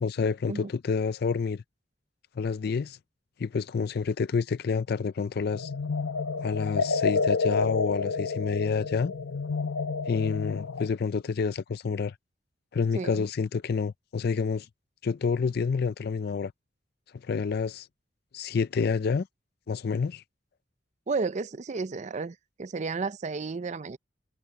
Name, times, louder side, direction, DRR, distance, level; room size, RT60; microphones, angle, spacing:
voice 1, 0.0-1.6 2.4-3.0 3.4-5.7 6.4-9.1 10.1-12.1 12.7-14.7 15.0-16.5 17.2-17.9 18.3-19.3 19.7-20.2, left 5 dB, 55° left, 0.4 m, -28 dB
sound 1, 5.5-10.9, left 4 dB, 85° left, 0.9 m, -29 dB
voice 2, 21.1-24.0, right 4 dB, 40° right, 0.5 m, -32 dB
head